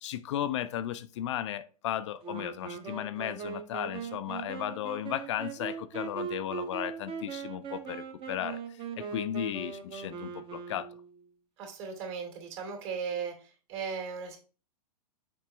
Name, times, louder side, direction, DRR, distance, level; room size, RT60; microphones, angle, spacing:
voice 1, 0.0-10.9, left 11 dB, 50° left, 0.4 m, -35 dB
Wind instrument woodwind instrument, 2.2-11.2, right 6 dB, 25° right, 0.9 m, -40 dB
voice 2, 11.6-14.4, right 6 dB, 50° right, 2.5 m, -37 dB
6.8 x 5.0 x 3.3 m
figure-of-eight pair, 105°, 20 cm